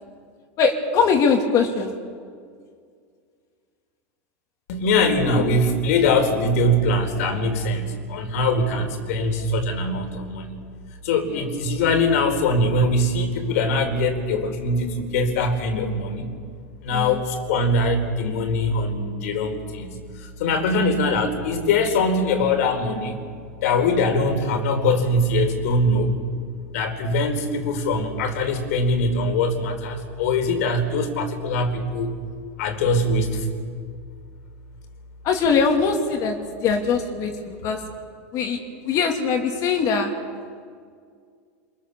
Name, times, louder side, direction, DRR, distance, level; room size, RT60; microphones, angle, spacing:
voice 1, 0.6-1.9 11.3-11.4 16.9-17.2 17.5-17.6 35.2-37.8 38.3-40.1, left 5 dB, 45° left, 4 dB, 3.0 m, -22 dB
voice 2, 4.7-10.6 11.0-16.3 16.8-23.2 23.6-26.1 26.7-32.1 32.6-33.5, left 2 dB, 75° left, 7 dB, 4.2 m, -22 dB
27.5 x 22.5 x 7.1 m, 2.1 s
supercardioid pair, 125°, 8 cm